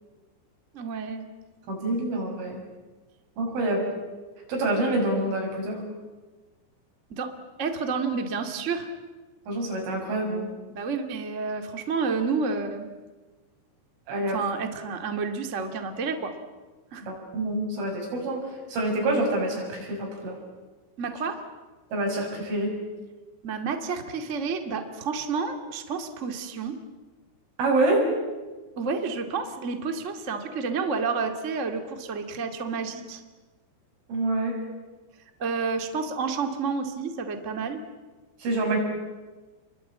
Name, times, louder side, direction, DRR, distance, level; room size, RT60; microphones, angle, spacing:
voice 1, 0.7-1.3 7.1-7.3 7.6-8.9 10.7-12.9 14.3-16.3 16.9-17.1 21.0-21.4 23.4-26.8 28.8-33.2 35.4-37.8, right 5 dB, 40° right, 5 dB, 1.0 m, -30 dB
voice 2, 1.7-2.6 3.4-3.8 4.5-5.8 9.5-10.5 14.1-14.4 17.0-18.4 18.7-20.4 21.9-22.7 27.6-28.1 34.1-34.6 38.4-38.8, right 2 dB, 80° right, 1 dB, 9.1 m, -26 dB
29.5 x 23.0 x 8.7 m, 1.3 s
omnidirectional pair, 5.4 m